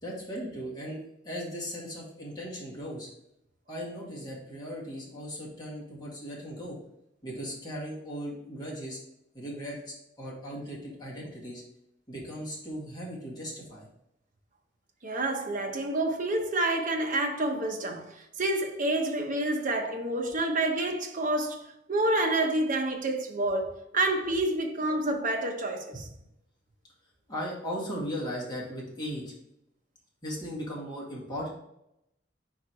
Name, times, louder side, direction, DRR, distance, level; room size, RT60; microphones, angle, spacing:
voice 1, 0.0-3.1 3.7-6.8 7.2-9.0 9.3-11.6 12.1-13.9 25.9-26.0 27.3-29.3 30.2-31.5, equal, 25° left, 1.9 m, -37 dB
voice 2, 15.0-25.9, right 2 dB, 45° right, 0.8 m, -28 dB
4.6 x 4.5 x 4.6 m
head